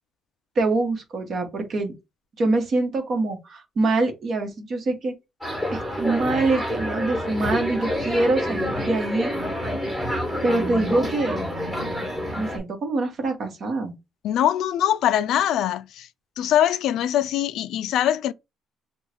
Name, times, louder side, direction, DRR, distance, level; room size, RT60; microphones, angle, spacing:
voice 1, 0.5-1.9 2.4-5.1 5.7-9.3 10.4-11.4 12.3-13.9, right 2 dB, 40° right, 1.2 m, -24 dB
sound 1, 5.4-12.6, equal, 5° right, 1.4 m, -28 dB
voice 2, 14.2-16.1 16.4-18.3, left 11 dB, 65° left, 0.3 m, -22 dB
3.7 x 2.3 x 4.3 m
cardioid pair, 155°, 0 cm